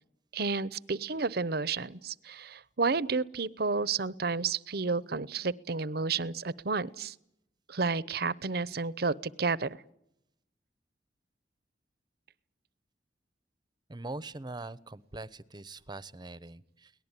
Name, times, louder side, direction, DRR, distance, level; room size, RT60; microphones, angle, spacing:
voice 1, 0.3-7.1 7.7-9.8, right 4 dB, 60° right, 20 dB, 0.8 m, -31 dB
voice 2, 13.9-16.9, right 2 dB, 25° right, 18 dB, 0.9 m, -42 dB
23.0 x 19.0 x 9.9 m, 0.79 s
head